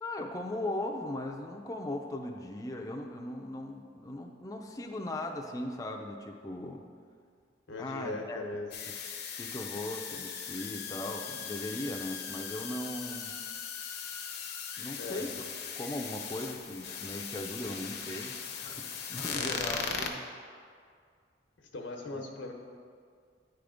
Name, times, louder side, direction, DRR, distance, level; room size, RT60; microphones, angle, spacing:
voice 1, 0.0-6.9 7.8-8.5 8.9-9.0 9.4-13.3 14.8-15.3 15.8-20.2 22.1-22.2, left 1 dB, 20° left, 1 dB, 0.4 m, -38 dB
voice 2, 7.7-8.7 14.9-15.3 19.3-19.6 21.6-22.5, left 2 dB, 90° left, 2 dB, 0.9 m, -39 dB
sound 1, 8.7-20.1, left 7 dB, 60° left, 0.6 m, -39 dB
9.8 x 3.5 x 5.0 m, 2.1 s
head